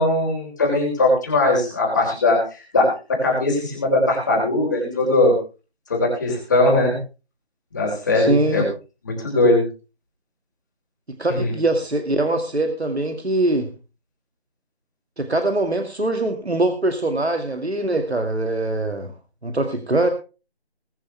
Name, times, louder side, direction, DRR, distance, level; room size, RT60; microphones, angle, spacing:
voice 1, 0.0-2.4 2.7-5.3 5.9-7.0 7.7-8.6 9.0-9.6 11.3-11.5, left 2 dB, 20° left, -1 dB, 4.1 m, -19 dB
voice 2, 8.1-8.6 11.2-13.7 15.2-19.1 19.4-20.1, right 2 dB, 80° right, 6 dB, 2.2 m, -22 dB
21.5 x 9.0 x 3.4 m, 0.32 s
figure-of-eight pair, 170°, 32 cm